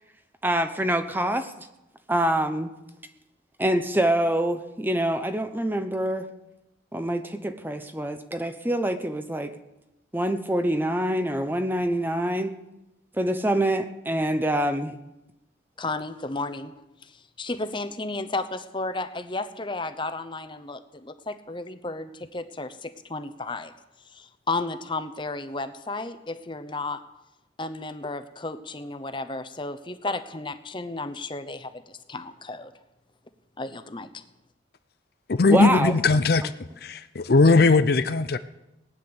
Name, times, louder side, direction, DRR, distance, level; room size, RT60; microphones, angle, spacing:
voice 1, 0.4-1.7 2.1-2.7 3.6-6.3 6.9-9.5 10.1-12.5 13.2-15.0 35.5-35.9 36.4-36.5, right 1 dB, 10° right, 0.7 m, -25 dB
voice 2, 15.8-16.7 17.0-23.7 24.0-27.0 27.6-32.7 33.6-34.2, left 2 dB, 25° left, 0.8 m, -33 dB
voice 3, 35.3-36.5 36.8-38.4, left 3 dB, 55° left, 0.5 m, -19 dB
18.5 x 9.8 x 7.0 m
head